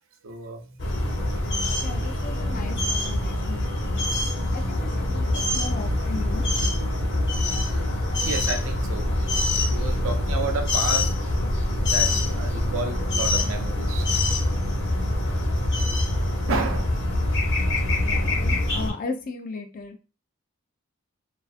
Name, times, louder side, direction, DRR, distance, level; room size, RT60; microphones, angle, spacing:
voice 1, 0.2-0.7 8.3-11.2 11.6-14.1 16.5-16.8, right 4 dB, 65° right, 0.5 m, -31 dB
sound 1, 0.8-18.9, left 1 dB, 55° left, 0.7 m, -24 dB
voice 2, 1.8-4.3 4.5-6.5 18.0-20.0, left 4 dB, 40° left, 0.3 m, -36 dB
2.4 x 2.3 x 2.4 m
head